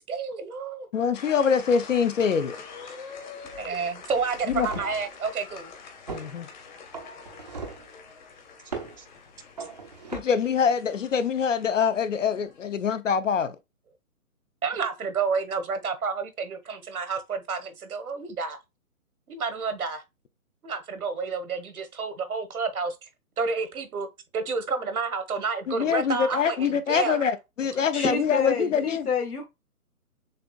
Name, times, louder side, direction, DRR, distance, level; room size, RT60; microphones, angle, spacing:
voice 1, 0.0-0.9 3.6-5.7 9.0-9.1 14.6-18.6 19.3-20.0 20.6-23.1 23.4-24.1 24.3-27.2, right 5 dB, 75° right, 1.2 m, -30 dB
voice 2, 0.9-2.6 4.5-4.7 6.1-6.5 10.1-13.6 25.7-29.1, left 6 dB, 55° left, 0.6 m, -24 dB
sound 1, 1.1-12.9, left 5 dB, 30° left, 1.0 m, -45 dB
sound 2, 3.5-3.7 4.1-5.1 6.1-6.3 6.9-7.9 8.7-9.0 9.6-10.2, right 4 dB, 30° right, 0.5 m, -38 dB
voice 3, 27.9-29.5, left 5 dB, 80° left, 1.4 m, -28 dB
6.7 x 2.5 x 2.2 m
hypercardioid pair, 150°, 44 cm